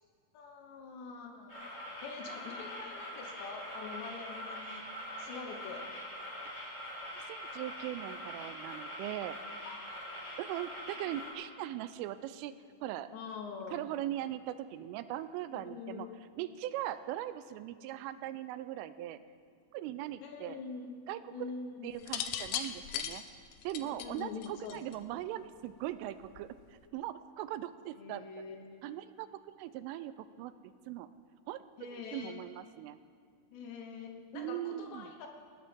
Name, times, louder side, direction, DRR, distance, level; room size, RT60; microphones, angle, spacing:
voice 1, 0.3-1.5 2.0-4.8 5.2-5.8 9.6-11.1 13.1-13.9 15.5-16.2 20.2-21.0 21.3-22.0 23.8-25.2 27.9-29.0 31.8-32.6 33.5-35.3, left 5 dB, 70° left, 3 dB, 3.0 m, -45 dB
sound 1, 1.5-11.3, equal, 25° left, 4.4 m, -43 dB
voice 2, 7.1-9.7 10.4-12.5 12.8-13.1 13.7-16.1 16.4-19.2 19.7-20.6 21.1-21.5 21.8-23.2 23.6-26.6 26.9-28.2 28.8-30.5 30.9-31.1 31.5-31.6 31.9-33.0 34.3-35.1, right 13 dB, 85° right, 12 dB, 3.1 m, -40 dB
sound 2, 22.0-25.1 26.2-26.6, left 9 dB, 90° left, 3.3 m, -38 dB
20.0 x 18.0 x 3.6 m, 2.1 s
omnidirectional pair, 5.7 m